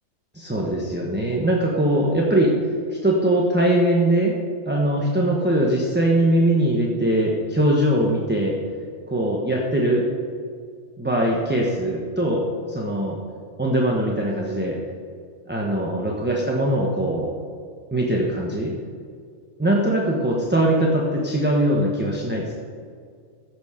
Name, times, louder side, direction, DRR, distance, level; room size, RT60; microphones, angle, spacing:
voice 1, 0.3-2.5 3.0-4.3 4.7-8.6 9.1-10.0 11.0-13.2 13.6-14.8 15.5-17.3 17.9-18.7 19.6-22.5, right 1 dB, 10° right, -3 dB, 1.2 m, -21 dB
14.5 x 7.4 x 5.1 m, 2.2 s
omnidirectional pair, 1.4 m